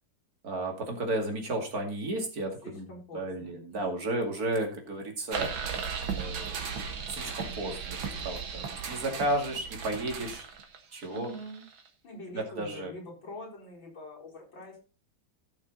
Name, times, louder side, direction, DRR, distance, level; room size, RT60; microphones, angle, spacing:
voice 1, 0.4-5.5 6.2-6.7 7.1-10.5 10.9-11.3 12.3-12.9, right 1 dB, 50° right, 3 dB, 2.8 m, -33 dB
voice 2, 2.6-3.9 11.1-11.6 12.0-14.8, left 1 dB, 75° left, -3 dB, 5.3 m, -44 dB
sound 1, 5.3-11.9, right 6 dB, 85° right, 2.4 m, -36 dB
16.0 x 6.4 x 4.0 m, 0.33 s
omnidirectional pair, 2.1 m